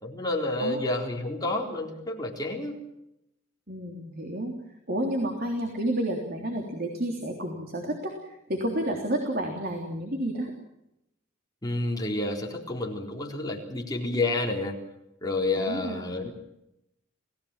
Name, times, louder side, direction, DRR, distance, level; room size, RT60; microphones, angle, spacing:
voice 1, 0.0-2.8 11.6-14.8 15.2-16.3, left 2 dB, 20° left, 0 dB, 3.9 m, -29 dB
voice 2, 3.7-4.5 4.9-10.5 15.5-16.2, right 1 dB, 45° right, 2 dB, 3.4 m, -30 dB
29.0 x 17.5 x 7.4 m, 0.86 s
head